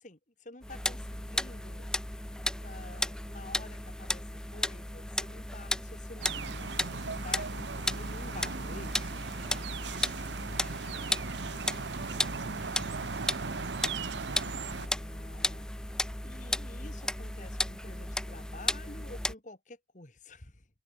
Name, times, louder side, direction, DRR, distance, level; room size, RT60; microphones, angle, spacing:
voice 1, 0.0-1.9 2.6-9.2 14.6-20.7, left 2 dB, 45° left, 2.1 m, -50 dB
sound 1, 0.6-19.3, left 1 dB, 5° left, 0.4 m, -35 dB
sound 2, 6.2-14.9, right 5 dB, 80° right, 0.8 m, -38 dB
voice 2, 9.3-9.4, right 1 dB, 15° right, 2.0 m, -59 dB
head